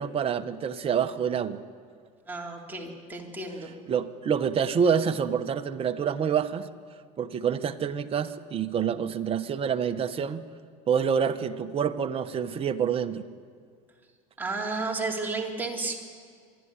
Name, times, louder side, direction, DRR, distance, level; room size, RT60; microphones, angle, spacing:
voice 1, 0.0-1.6 3.9-6.7 7.2-10.4 10.9-13.2, right 7 dB, 35° right, 8 dB, 1.0 m, -27 dB
voice 2, 2.3-3.7 14.4-16.0, right 3 dB, 10° right, -2 dB, 3.6 m, -32 dB
25.5 x 11.5 x 9.8 m, 2.1 s
supercardioid pair, 105°, 18 cm